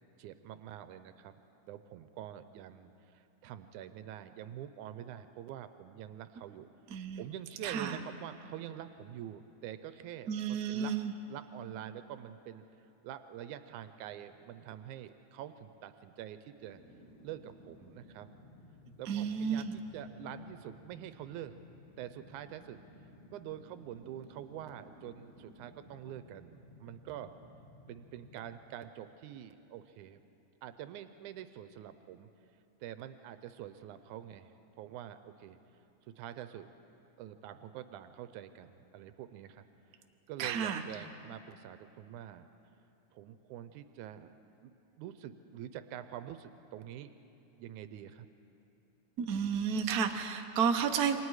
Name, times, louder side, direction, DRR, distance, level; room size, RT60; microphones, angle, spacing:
voice 1, 0.2-1.3 1.7-6.7 7.2-10.9 11.3-16.8 17.2-18.3 19.0-21.6 22.0-22.8 23.3-27.3 27.9-30.2 30.6-32.3 32.8-34.5 34.8-35.6 36.2-36.7 37.2-39.7 40.3-42.5 43.1-44.3 44.6-44.7 45.0-47.1 47.6-48.3, right 11 dB, 85° right, 10 dB, 2.1 m, -46 dB
voice 2, 6.9-7.2 7.6-8.0 10.3-11.1 19.0-19.8 40.4-41.0 49.2-51.2, right 7 dB, 70° right, 4 dB, 0.8 m, -32 dB
sound 1, 16.5-29.6 29.9-30.0, left 1 dB, 15° left, 7.1 m, -57 dB
28.5 x 24.5 x 4.8 m, 2.8 s
omnidirectional pair, 3.4 m